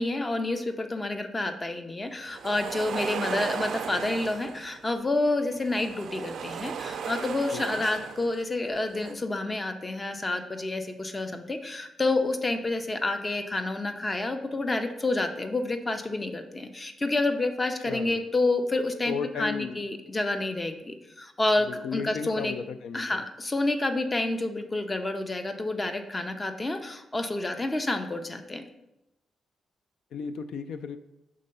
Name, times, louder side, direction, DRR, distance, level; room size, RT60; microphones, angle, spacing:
voice 1, 0.0-22.5 22.9-28.6, left 2 dB, 20° left, 7 dB, 0.5 m, -29 dB
sound 1, 2.3-4.8 5.5-8.4 8.8-9.1, right 7 dB, 65° right, 0.3 m, -36 dB
voice 2, 7.5-7.9 17.9-18.2 19.1-19.8 21.7-23.2 30.1-31.0, left 6 dB, 90° left, 10 dB, 0.3 m, -35 dB
5.4 x 3.7 x 5.4 m, 0.89 s
wide cardioid pair, 150°, 0 cm